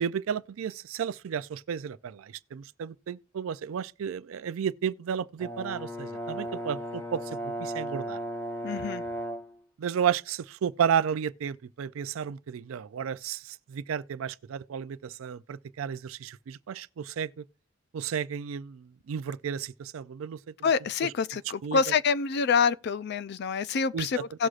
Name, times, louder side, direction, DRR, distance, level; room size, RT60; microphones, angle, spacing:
voice 1, 0.0-8.2 9.8-17.4 17.9-20.5 21.0-21.1 21.6-21.9 23.9-24.1 24.4-24.5, right 8 dB, 80° right, 0.4 m, -32 dB
Brass instrument, 5.4-9.6, right 1 dB, 10° left, 0.7 m, -35 dB
voice 2, 8.6-9.0 20.6-24.5, left 5 dB, 50° left, 0.4 m, -27 dB
17.5 x 6.3 x 2.4 m
head